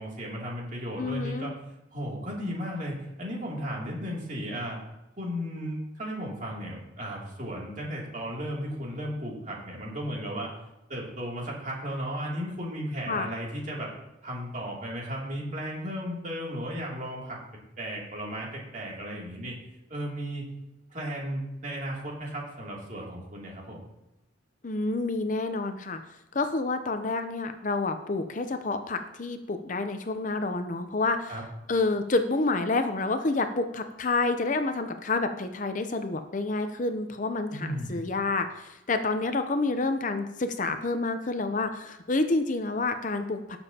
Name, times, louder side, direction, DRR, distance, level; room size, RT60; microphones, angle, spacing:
voice 1, 0.0-1.5 1.9-4.8 5.2-10.6 10.9-13.9 14.2-17.4 17.8-19.6 19.9-20.5 20.9-23.9 31.3-31.4 37.5-38.0, equal, 40° right, -3 dB, 2.7 m, -35 dB
voice 2, 1.0-1.5 13.1-13.3 24.6-26.0 26.3-31.3 31.7-43.6, left 3 dB, 40° left, 8 dB, 0.6 m, -28 dB
17.5 x 7.1 x 2.8 m, 0.93 s
head